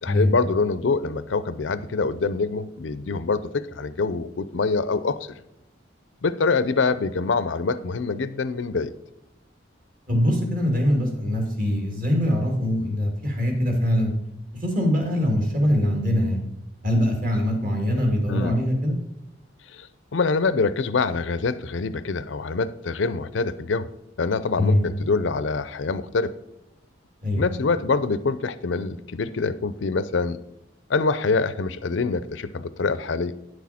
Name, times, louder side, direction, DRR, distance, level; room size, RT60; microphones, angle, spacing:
voice 1, 0.0-5.4 6.2-8.9 18.3-18.6 19.7-19.9 20.1-23.9 24.2-26.4 27.4-30.4 30.9-33.4, left 4 dB, 85° left, 14 dB, 0.5 m, -25 dB
voice 2, 10.1-14.1 14.6-16.4 16.8-19.0 24.6-24.9 27.2-27.4, left 1 dB, 45° right, 2 dB, 2.3 m, -22 dB
9.8 x 6.2 x 4.3 m, 0.87 s
head